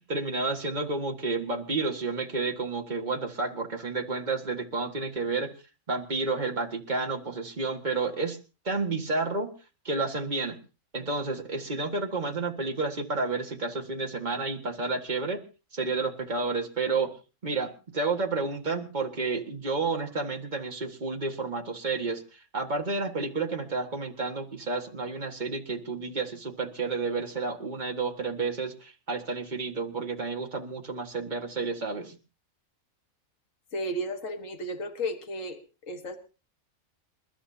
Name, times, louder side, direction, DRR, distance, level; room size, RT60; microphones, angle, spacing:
voice 1, 0.0-5.5 5.9-8.4 8.7-9.5 9.9-10.6 10.9-15.4 15.7-17.1 17.4-32.2, right 3 dB, 35° right, 2 dB, 1.9 m, -31 dB
voice 2, 33.7-35.6 35.9-36.2, equal, 65° left, 5 dB, 2.0 m, -33 dB
28.5 x 12.5 x 2.8 m, 0.32 s
omnidirectional pair, 1.4 m